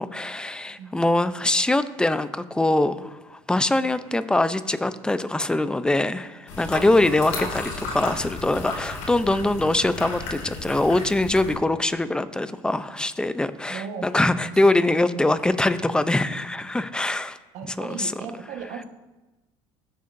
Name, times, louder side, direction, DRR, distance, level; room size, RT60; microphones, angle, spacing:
voice 1, 0.0-17.4 17.8-18.1, left 2 dB, 5° left, 12 dB, 0.6 m, -23 dB
sound 1, 6.5-11.5, left 3 dB, 75° left, 2.7 m, -34 dB
voice 2, 13.7-14.1 15.0-15.3 17.5-18.8, right 6 dB, 70° right, 5 dB, 1.4 m, -36 dB
20.0 x 6.7 x 2.7 m, 1.1 s
supercardioid pair, 110°, 12 cm